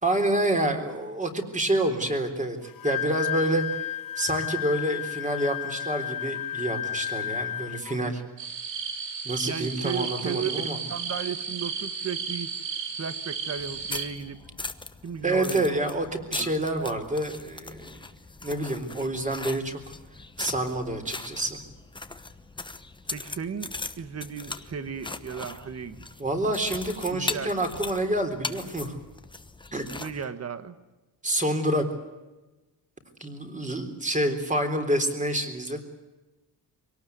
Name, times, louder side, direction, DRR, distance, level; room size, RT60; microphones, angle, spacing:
voice 1, 0.0-8.2 9.2-10.8 15.2-18.0 18.4-19.8 20.4-21.6 26.2-28.9 29.7-29.8 31.2-31.9 33.2-35.8, right 1 dB, 15° right, 6 dB, 3.7 m, -28 dB
Wind instrument woodwind instrument, 2.6-8.0, left 12 dB, 50° left, 1.4 m, -32 dB
sound 1, 8.4-14.1, right 6 dB, 85° right, 5.2 m, -34 dB
voice 2, 9.5-12.5 13.0-14.4 15.0-15.8 16.4-16.5 23.1-23.7 24.0-26.1 27.1-27.5 30.0-30.8, right 6 dB, 35° right, 12 dB, 1.6 m, -35 dB
sound 2, 13.6-30.2, left 3 dB, 10° left, 1.0 m, -39 dB
25.5 x 18.5 x 9.4 m, 1.1 s
wide cardioid pair, 155°, 42 cm